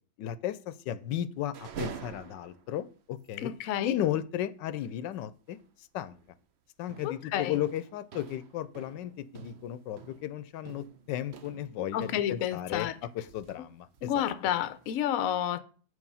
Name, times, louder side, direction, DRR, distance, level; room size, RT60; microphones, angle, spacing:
voice 1, 0.2-3.5 3.8-6.1 6.8-14.3, left 11 dB, 85° left, 1.3 m, -35 dB
sound 1, 1.4-2.8 3.2-3.3 3.6-3.8 5.4-5.7 6.0-6.3 6.9-13.6 13.9-14.9, right 7 dB, 60° right, 0.7 m, -47 dB
voice 2, 3.4-3.9 7.0-7.5 11.9-12.9 14.0-15.6, left 10 dB, 65° left, 0.9 m, -30 dB
8.2 x 4.9 x 5.5 m
omnidirectional pair, 1.9 m